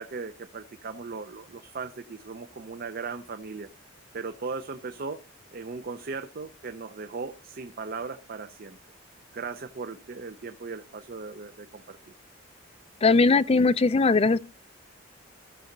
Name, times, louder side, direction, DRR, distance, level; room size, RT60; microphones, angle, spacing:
voice 1, 0.0-3.7 4.1-5.2 5.5-8.8 9.3-12.0, right 4 dB, 50° right, 0.6 m, -37 dB
voice 2, 13.0-14.4, left 3 dB, 30° left, 0.4 m, -20 dB
15.5 x 6.4 x 3.9 m
head